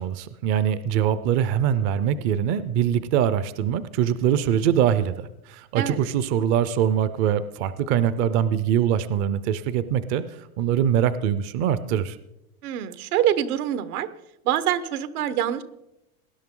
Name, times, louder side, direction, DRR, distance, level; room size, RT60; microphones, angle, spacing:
voice 1, 0.0-12.2, right 9 dB, 30° right, 14 dB, 0.4 m, -23 dB
voice 2, 12.6-14.1 14.4-15.6, right 11 dB, 80° right, 13 dB, 1.1 m, -25 dB
19.0 x 10.5 x 3.7 m, 0.88 s
supercardioid pair, 150°, 44 cm